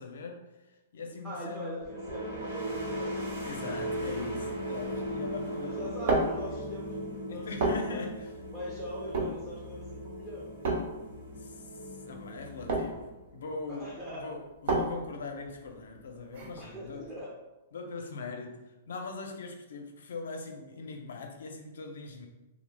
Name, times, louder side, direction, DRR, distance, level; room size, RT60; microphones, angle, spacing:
voice 1, 0.0-1.9 3.4-6.2 6.5-6.6 7.3-8.3 11.3-17.1 17.7-22.3, left 3 dB, 85° left, 3 dB, 0.5 m, -41 dB
voice 2, 1.2-3.2 5.6-6.9 7.3-7.4 7.9-8.1 8.5-10.5 13.7-14.3 16.6-17.3, equal, 5° right, -8 dB, 0.5 m, -42 dB
sound 1, 1.8-13.4, equal, 90° right, 1.1 m, -38 dB
sound 2, 5.7-17.2, right 2 dB, 55° right, 0.6 m, -34 dB
2.9 x 2.0 x 3.3 m, 1.0 s
hypercardioid pair, 160°, 0 cm